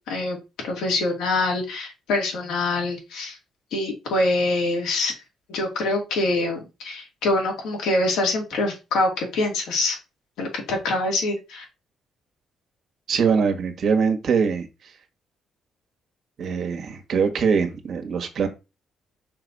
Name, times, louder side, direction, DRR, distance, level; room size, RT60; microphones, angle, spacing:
voice 1, 0.1-0.4 0.6-3.4 3.7-5.2 5.5-10.0 10.4-11.6, left 2 dB, 85° left, 2.7 m, -25 dB
voice 2, 13.1-14.7 16.4-18.5, right 6 dB, 60° right, 1.5 m, -22 dB
5.6 x 3.3 x 5.3 m
cardioid pair, 110°, 0 cm